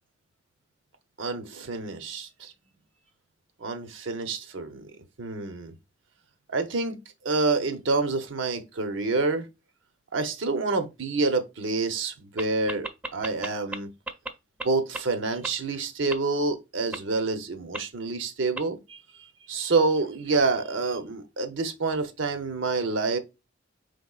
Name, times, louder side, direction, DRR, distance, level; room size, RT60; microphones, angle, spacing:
voice 1, 1.2-2.5 3.6-4.9 5.2-5.7 6.5-7.0 7.2-9.5 10.1-12.9 13.1-13.9 14.6-19.0 19.5-23.2, right 3 dB, 85° right, 0.8 m, -27 dB
sound 1, 12.4-12.5 12.7-13.8 14.1-14.3 14.6-14.7 14.9-15.0 15.4-15.5 16.1-16.2 16.9-17.0 17.7-17.8 18.6-18.7, right 2 dB, 5° right, 0.5 m, -32 dB
5.1 x 3.6 x 2.4 m
head